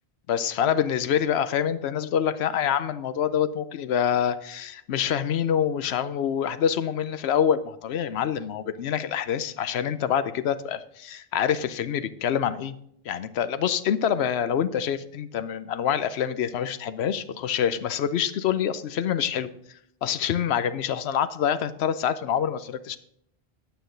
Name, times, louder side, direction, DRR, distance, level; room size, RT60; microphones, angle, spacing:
voice 1, 0.3-12.7 13.0-19.5 20.0-23.0, left 8 dB, 85° left, 13 dB, 0.9 m, -26 dB
9.2 x 8.8 x 3.8 m, 0.72 s
omnidirectional pair, 1.1 m